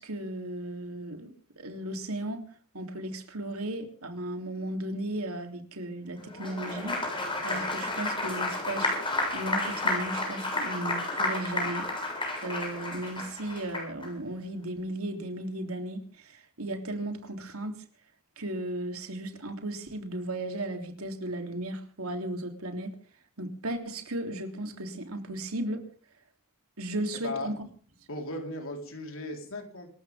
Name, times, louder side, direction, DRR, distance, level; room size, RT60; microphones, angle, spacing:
voice 1, 0.0-2.5 2.7-9.0 9.3-11.9 12.4-17.8 18.4-22.9 23.4-25.9 26.8-27.5, right 1 dB, 80° right, 5 dB, 3.4 m, -35 dB
Applause, 6.3-14.1, left 2 dB, 25° left, 7.5 m, -31 dB
voice 2, 28.1-29.9, left 1 dB, 65° left, 3 dB, 4.5 m, -37 dB
26.5 x 14.5 x 3.7 m, 0.42 s
head